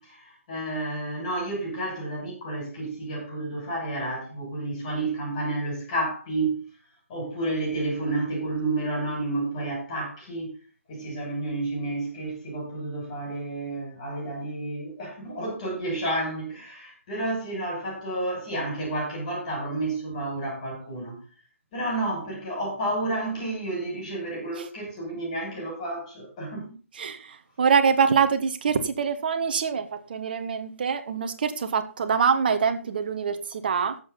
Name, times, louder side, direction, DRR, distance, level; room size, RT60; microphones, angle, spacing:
voice 1, 0.0-6.6 7.1-10.5 10.9-21.2 21.7-26.7, right 2 dB, 30° left, 7.2 m, -30 dB
voice 2, 26.9-34.0, right 6 dB, 40° right, 1.3 m, -25 dB
15.5 x 7.3 x 4.2 m
figure-of-eight pair, 145°, 8 cm